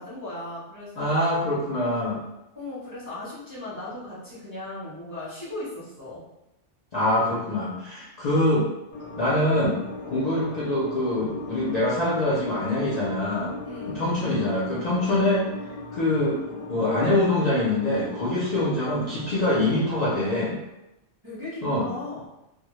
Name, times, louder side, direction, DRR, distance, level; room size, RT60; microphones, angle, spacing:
voice 1, 0.0-1.2 2.5-6.2 13.6-14.1 21.2-22.3, left 2 dB, 25° right, -10 dB, 0.6 m, -37 dB
voice 2, 1.0-2.2 6.9-8.7 9.2-13.5 13.8-15.5 15.9-20.6 21.6-21.9, left 1 dB, 55° left, -7 dB, 0.5 m, -24 dB
sound 1, 8.9-20.1, left 2 dB, 90° left, 0.9 m, -38 dB
2.1 x 2.0 x 3.0 m, 0.91 s
omnidirectional pair, 1.1 m